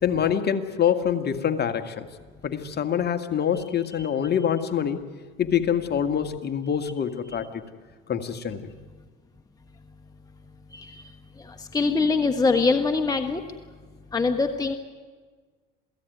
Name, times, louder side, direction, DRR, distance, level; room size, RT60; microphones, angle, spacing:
voice 1, 0.0-2.1 2.4-5.0 5.4-7.6 8.1-8.7, left 8 dB, 35° left, 7 dB, 1.9 m, -25 dB
voice 2, 10.7-11.1 11.4-13.4 14.1-14.8, left 4 dB, 15° left, 7 dB, 1.4 m, -23 dB
28.0 x 17.5 x 9.4 m, 1.5 s
supercardioid pair, 90°, 29 cm